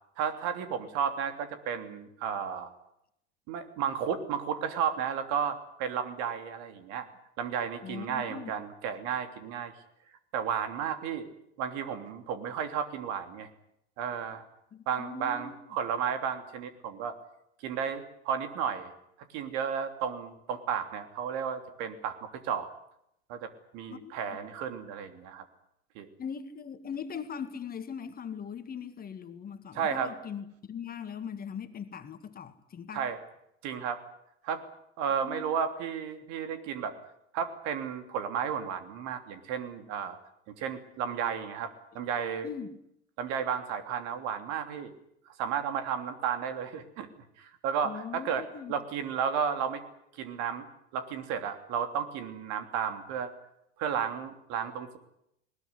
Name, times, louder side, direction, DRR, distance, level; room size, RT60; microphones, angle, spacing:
voice 1, 0.2-2.7 3.5-7.1 7.4-9.7 10.3-11.3 11.6-13.5 14.0-14.4 14.9-17.1 17.6-18.9 19.3-22.7 23.3-25.4 25.9-26.1 29.7-30.1 32.9-33.2 33.6-34.0 34.4-34.6 35.0-36.9 37.3-40.2 40.6-42.5 43.2-44.9 45.4-47.1 47.4-49.8 50.2-50.7 50.9-53.3 53.8-55.0, right 7 dB, 50° right, 9 dB, 3.2 m, -33 dB
voice 2, 7.8-8.5 14.7-15.6 23.9-24.1 26.2-33.0 35.2-35.4 42.4-42.7 47.8-48.7, left 7 dB, 25° left, 9 dB, 1.9 m, -40 dB
20.0 x 20.0 x 9.8 m, 0.78 s
hypercardioid pair, 95°, 34 cm